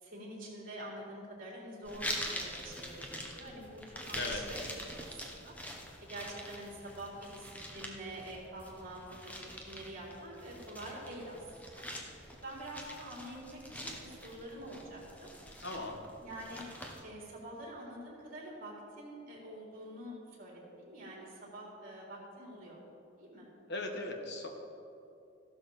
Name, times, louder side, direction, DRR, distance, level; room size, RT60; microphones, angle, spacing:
voice 1, 0.0-5.5 6.0-11.8 12.4-15.3 16.2-16.6 17.0-22.8 23.2-23.5, right 1 dB, 45° right, -3 dB, 3.8 m, -46 dB
sound 1, 1.8-17.0, equal, 10° left, 1.2 m, -45 dB
voice 2, 15.6-16.0 23.7-24.5, left 2 dB, 60° left, 2 dB, 1.5 m, -38 dB
14.5 x 12.0 x 4.3 m, 2.6 s
head